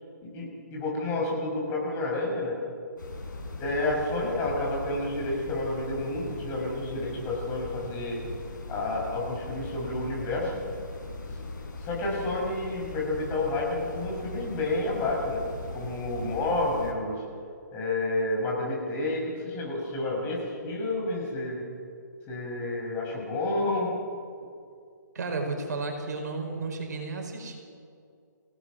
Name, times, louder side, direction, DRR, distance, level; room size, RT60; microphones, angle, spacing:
voice 1, 0.2-2.6 3.6-8.2 8.7-10.6 11.8-15.4 15.7-17.2 17.7-21.6 22.3-23.9, left 2 dB, 20° left, -2 dB, 6.6 m, -30 dB
sound 1, 3.0-16.9, left 2 dB, 80° left, 5.8 m, -39 dB
voice 2, 25.1-27.6, right 3 dB, 60° right, 3 dB, 4.9 m, -33 dB
28.0 x 17.5 x 6.4 m, 2.4 s
hypercardioid pair, 150°, 10 cm